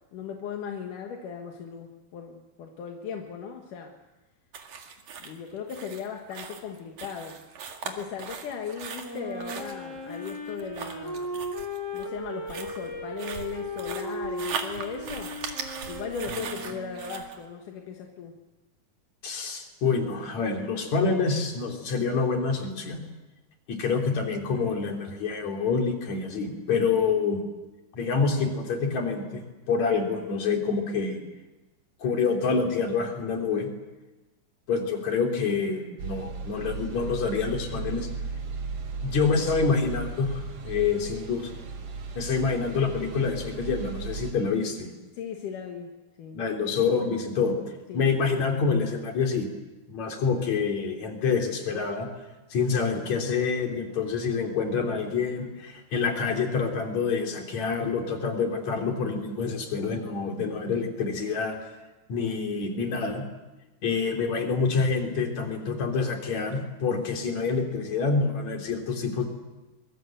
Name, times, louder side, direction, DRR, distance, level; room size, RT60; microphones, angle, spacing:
voice 1, 0.1-3.9 5.2-7.4 7.8-11.4 11.9-15.4 15.9-18.4 45.1-46.4 47.9-48.2, left 6 dB, 80° left, 3 dB, 3.1 m, -37 dB
sound 1, 4.5-17.4, right 6 dB, 70° right, 3.5 m, -39 dB
Wind instrument woodwind instrument, 9.0-17.4, equal, 5° left, 3.0 m, -37 dB
voice 2, 19.2-23.0 23.7-27.4 27.9-29.4 29.7-31.2 32.0-33.7 34.7-38.1 39.0-41.5 42.1-44.9 46.3-47.5 47.9-49.5 49.9-52.1 52.5-61.6 62.1-63.2 63.8-69.3, left 5 dB, 60° left, 3 dB, 4.5 m, -27 dB
sound 2, 36.0-44.3, right 4 dB, 50° right, 2.4 m, -36 dB
24.5 x 23.0 x 7.9 m, 1.1 s
omnidirectional pair, 3.6 m